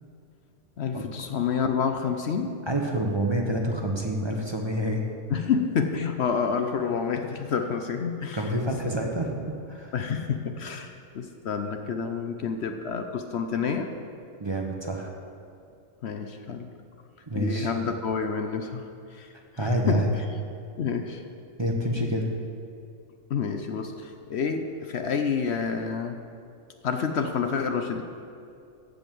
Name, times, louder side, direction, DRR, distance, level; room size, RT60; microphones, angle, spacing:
voice 1, 0.8-2.6 5.3-8.5 9.9-13.9 16.0-16.7 17.3-20.3 20.8-21.2 23.3-26.2 26.8-28.0, left 6 dB, 60° left, 6 dB, 0.9 m, -29 dB
voice 2, 2.7-5.0 8.3-9.3 9.7-9.9 14.4-15.1 17.3-17.7 19.6-20.1 21.6-22.3, right 1 dB, 25° right, 0 dB, 1.0 m, -27 dB
14.5 x 5.3 x 7.7 m, 2.5 s
omnidirectional pair, 1.3 m